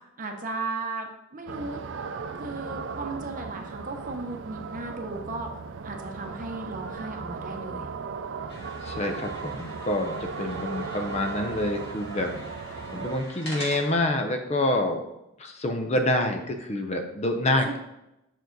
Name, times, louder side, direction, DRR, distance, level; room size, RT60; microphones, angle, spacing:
voice 1, 0.2-1.8 2.4-5.5 5.8-7.9 17.6-17.8, right 3 dB, 40° right, 4 dB, 0.8 m, -35 dB
sound 1, 1.5-13.2, right 5 dB, 60° right, 0.4 m, -37 dB
sound 2, 8.5-14.0, left 1 dB, 50° left, 2.3 m, -43 dB
voice 2, 8.8-12.3 12.6-15.0 15.4-17.8, left 1 dB, 30° left, 5 dB, 0.6 m, -27 dB
6.1 x 4.6 x 3.9 m, 0.88 s
head